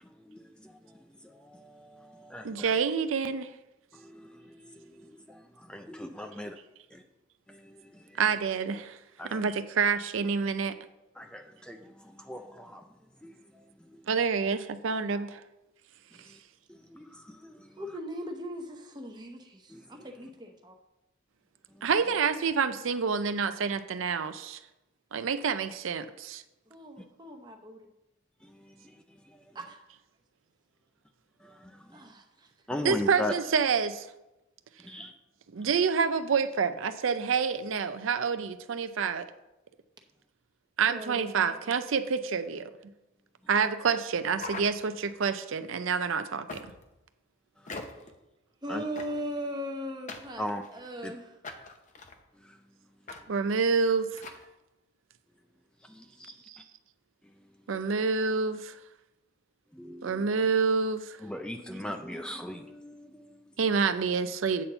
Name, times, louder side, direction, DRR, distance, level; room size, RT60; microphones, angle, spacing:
voice 1, 0.0-2.8 3.9-6.6 6.9-7.0 7.5-8.2 9.2-9.4 11.2-12.8 13.2-14.1 16.1-16.4 16.7-17.8 19.7-20.1 21.7-21.9 28.4-29.6 31.4-32.1 32.7-33.3 34.8-35.1 35.6-35.7 47.6-47.8 48.7-48.8 50.4-50.6 51.0-51.1 52.3-52.6 55.8-56.6 57.2-57.5 59.7-60.3 61.2-63.5, left 1 dB, 5° left, 5 dB, 0.4 m, -41 dB
voice 2, 2.4-3.5 8.2-9.0 9.3-10.8 14.1-15.4 21.8-24.6 25.1-26.4 32.8-34.1 35.5-39.3 40.8-42.7 43.5-46.7 53.3-54.2 56.5-56.6 57.7-58.8 60.0-61.2 63.6-64.6, right 5 dB, 80° right, 10 dB, 0.5 m, -28 dB
voice 3, 17.8-20.8 26.7-27.9 29.5-29.8 31.9-32.5 33.1-33.3 40.9-41.5 48.6-50.4 50.7-51.3 61.6-62.1, equal, 20° right, 3 dB, 0.9 m, -39 dB
sound 1, 44.3-45.2 46.5-47.0 47.7-48.2 49.0-49.4 50.1-50.9 51.4-52.2 53.1-53.2 53.5-53.6 54.1-54.4, left 3 dB, 40° left, 0.7 m, -42 dB
8.4 x 4.3 x 6.7 m, 0.95 s
head